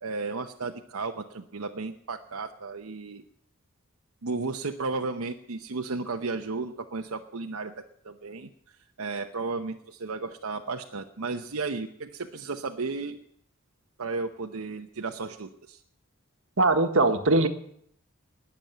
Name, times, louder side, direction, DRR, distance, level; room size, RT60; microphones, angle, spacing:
voice 1, 0.0-3.2 4.2-8.5 9.0-13.2 14.0-15.8, right 3 dB, 85° right, 4 dB, 0.9 m, -34 dB
voice 2, 16.6-17.5, right 2 dB, 70° right, 7 dB, 1.4 m, -21 dB
20.0 x 7.2 x 9.2 m, 0.69 s
head